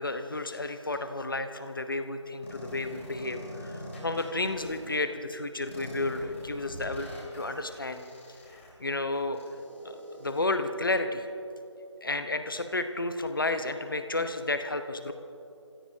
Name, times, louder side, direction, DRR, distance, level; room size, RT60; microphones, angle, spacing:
voice 1, 0.0-8.0 8.8-9.4 9.8-11.3 12.0-15.1, left 2 dB, 45° left, 8 dB, 0.9 m, -32 dB
sound 1, 2.4-5.0 5.7-10.4, left 1 dB, 25° left, 3.1 m, -44 dB
29.5 x 16.5 x 2.7 m, 2.8 s
figure-of-eight pair, 165°, 16 cm